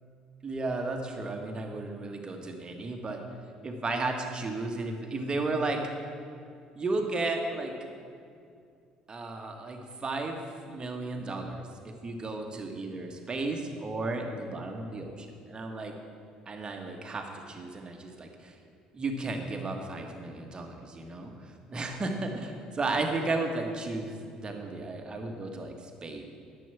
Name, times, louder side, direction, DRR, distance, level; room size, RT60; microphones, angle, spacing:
voice 1, 0.4-3.2 3.6-5.8 6.7-7.7 9.1-15.9 16.4-18.6 18.9-24.1 24.4-26.2, right 2 dB, 30° right, 3 dB, 1.6 m, -34 dB
11.0 x 7.1 x 7.2 m, 2.3 s
figure-of-eight pair, 55°, 3 cm